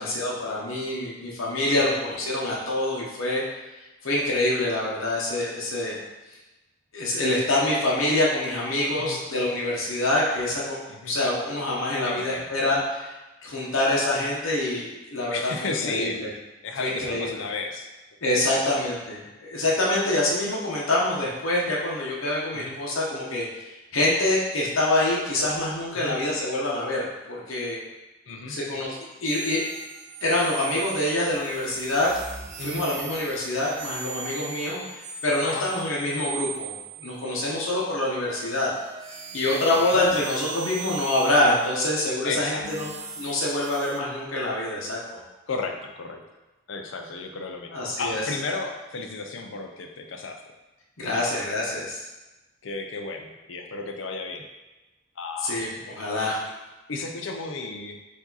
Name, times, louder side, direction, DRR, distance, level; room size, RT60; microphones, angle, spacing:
voice 1, 0.0-3.4 4.0-6.0 6.9-10.8 11.1-13.1 13.4-16.3 16.8-17.4 18.2-23.5 23.9-27.8 28.5-29.6 30.2-32.1 32.6-34.8 35.2-36.7 37.0-38.7 39.3-45.2 47.7-48.2 51.0-52.0 55.4-56.4, left 1 dB, 80° left, -5 dB, 0.9 m, -26 dB
voice 2, 12.0-12.5 15.3-16.2 16.6-17.9 18.5-18.8 22.5-22.8 25.9-26.2 28.3-28.6 32.6-32.9 35.5-35.7 39.8-40.0 42.2-42.8 45.5-46.2 46.7-50.4 51.1-51.5 52.6-54.5 55.2-55.6 56.9-58.0, left 3 dB, 65° left, 4 dB, 0.5 m, -34 dB
sound 1, 29.3-37.6 38.3-44.0, right 6 dB, 35° right, 0.4 m, -39 dB
4.8 x 2.7 x 3.9 m, 1.1 s
head